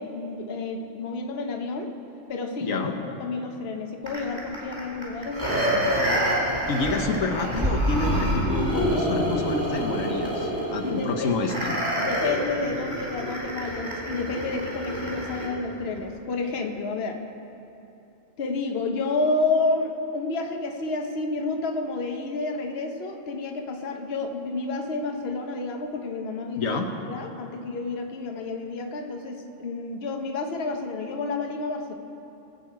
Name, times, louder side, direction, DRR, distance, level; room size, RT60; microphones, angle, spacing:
voice 1, 0.0-1.9 2.3-2.9 3.2-5.9 10.8-11.3 12.0-17.2 18.4-26.8 27.1-31.9, left 3 dB, 55° left, 3 dB, 1.2 m, -30 dB
voice 2, 2.6-2.9 6.7-11.8 26.6-26.9, left 4 dB, 90° left, 4 dB, 1.4 m, -28 dB
sound 1, 4.1-15.5 16.0-16.1, equal, 35° right, 3.7 m, -27 dB
22.0 x 8.4 x 4.7 m, 2.8 s
omnidirectional pair, 1.3 m